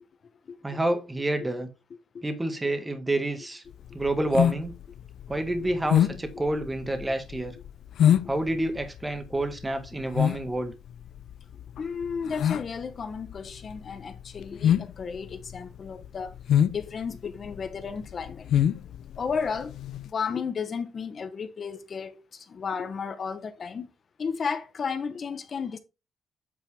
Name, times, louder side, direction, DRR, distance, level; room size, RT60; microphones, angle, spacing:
voice 1, 0.6-1.7 2.2-3.6 3.9-4.7 5.3-7.5 8.3-10.7, right 1 dB, 15° right, 1.6 m, -28 dB
sound 1, 3.7-20.1, left 9 dB, 70° left, 0.4 m, -26 dB
voice 2, 11.8-16.3 16.7-18.5 19.2-19.7 20.1-23.9 24.2-25.8, left 6 dB, 45° left, 0.8 m, -33 dB
8.5 x 4.4 x 3.4 m
cardioid pair, 90°, 0 cm